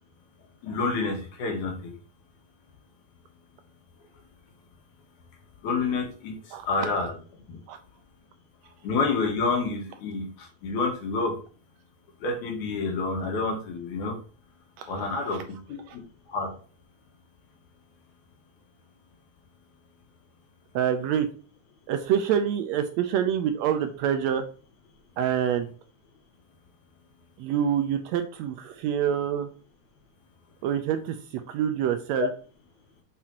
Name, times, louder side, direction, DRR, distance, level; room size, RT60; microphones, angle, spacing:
voice 1, 0.6-1.9 5.6-7.2 7.5-7.6 8.8-11.4 12.2-14.2 14.9-16.0 16.3-16.5, left 3 dB, 80° left, 2 dB, 2.9 m, -28 dB
voice 2, 14.8-15.4 15.9-16.0 20.7-21.3 21.9-24.4 25.2-25.7 27.4-29.5 30.6-32.3, right 9 dB, 80° right, 8 dB, 1.6 m, -26 dB
7.5 x 4.9 x 2.8 m, 0.39 s
omnidirectional pair, 3.4 m